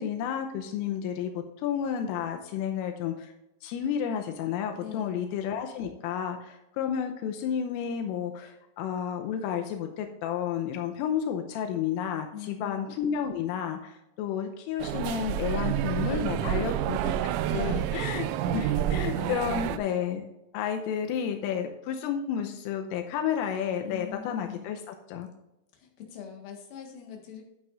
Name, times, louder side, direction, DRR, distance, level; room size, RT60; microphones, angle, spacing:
voice 1, 0.0-3.3 3.6-20.2 20.5-25.3, left 8 dB, 85° left, 4 dB, 3.3 m, -31 dB
voice 2, 4.8-5.2 12.3-13.3 16.0-16.7 17.5-17.9 18.7-18.8 19.1-19.7 23.8-24.7 25.7-27.4, left 8 dB, 60° left, 1 dB, 3.0 m, -43 dB
sound 1, 14.8-19.8, right 11 dB, 85° right, 2.7 m, -29 dB
11.5 x 8.9 x 2.5 m, 0.92 s
omnidirectional pair, 5.9 m